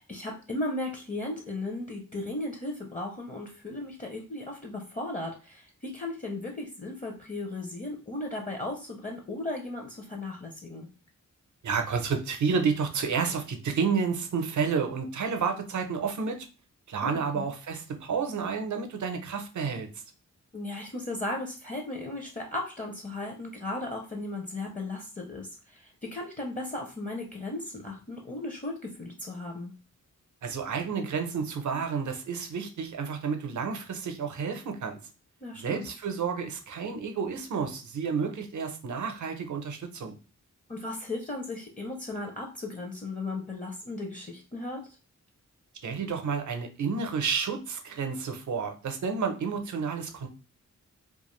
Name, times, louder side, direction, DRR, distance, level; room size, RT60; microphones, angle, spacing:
voice 1, 0.0-10.9 17.0-17.5 20.5-29.7 35.4-35.9 40.7-44.8, left 2 dB, 25° left, 0 dB, 0.5 m, -36 dB
voice 2, 11.6-16.4 16.9-19.9 30.4-35.0 35.6-40.1 45.8-50.3, right 5 dB, 70° right, 5 dB, 0.6 m, -30 dB
2.4 x 2.4 x 3.0 m, 0.34 s
wide cardioid pair, 105°, 31 cm